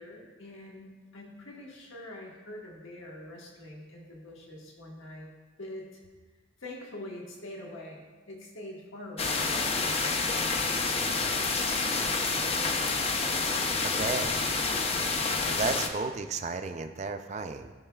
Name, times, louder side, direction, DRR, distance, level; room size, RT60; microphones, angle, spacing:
voice 1, 0.0-5.3 5.6-6.0 6.6-9.5, left 1 dB, 80° left, -2 dB, 1.4 m, -44 dB
sound 1, 9.2-15.9, left 4 dB, 30° left, 0.5 m, -28 dB
voice 2, 13.8-14.4 15.4-17.7, right 4 dB, 35° right, 7 dB, 0.4 m, -33 dB
15.5 x 5.8 x 2.3 m, 1.3 s
head